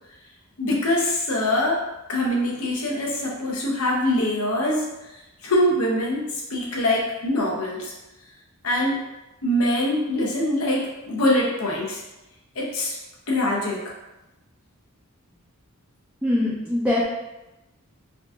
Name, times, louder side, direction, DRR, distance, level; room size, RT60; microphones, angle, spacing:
voice 1, 0.6-1.8 2.1-7.9 8.6-9.0 9.4-12.0 12.5-12.9 13.3-13.9, left 1 dB, 70° left, -3 dB, 0.8 m, -24 dB
voice 2, 16.2-17.0, left 1 dB, 5° right, -9 dB, 0.5 m, -22 dB
3.7 x 2.6 x 2.4 m, 0.98 s
head